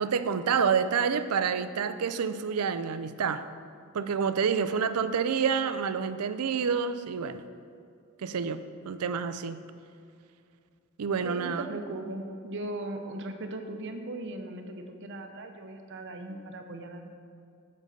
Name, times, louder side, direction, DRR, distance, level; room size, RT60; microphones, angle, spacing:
voice 1, 0.0-3.4 3.9-7.4 8.2-9.6 11.0-11.7, right 6 dB, 85° right, 12 dB, 0.5 m, -28 dB
voice 2, 4.6-5.0 11.2-17.1, right 1 dB, 55° right, 6 dB, 0.8 m, -38 dB
7.5 x 5.2 x 6.6 m, 2.3 s
head